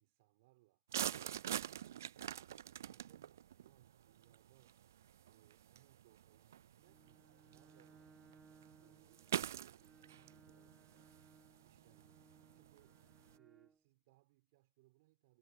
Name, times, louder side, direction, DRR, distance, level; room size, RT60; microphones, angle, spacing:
voice 1, 0.0-1.4 2.5-4.9 5.2-8.5 8.8-11.1 11.6-13.0 13.3-15.4, right 21 dB, 35° right, 6.5 m, -72 dB
sound 1, 0.9-13.4, right 10 dB, 50° right, 0.3 m, -47 dB
Bowed string instrument, 6.7-13.8, right 4 dB, 5° right, 1.4 m, -66 dB
hypercardioid pair, 150°, 2 cm